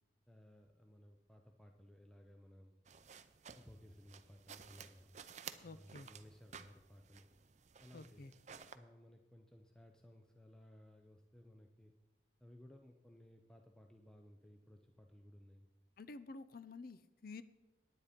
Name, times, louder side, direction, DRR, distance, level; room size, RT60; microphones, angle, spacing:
voice 1, 0.3-2.8 3.5-5.1 5.6-7.3 7.8-8.3 8.7-11.9 12.4-15.7, equal, 5° left, 3 dB, 0.6 m, -60 dB
sound 1, 2.9-8.8, right 7 dB, 35° right, 0.5 m, -55 dB
voice 2, 5.6-6.1 7.9-8.3 16.0-17.4, left 3 dB, 50° left, 14 dB, 0.5 m, -51 dB
10.0 x 9.8 x 5.1 m, 1.1 s
head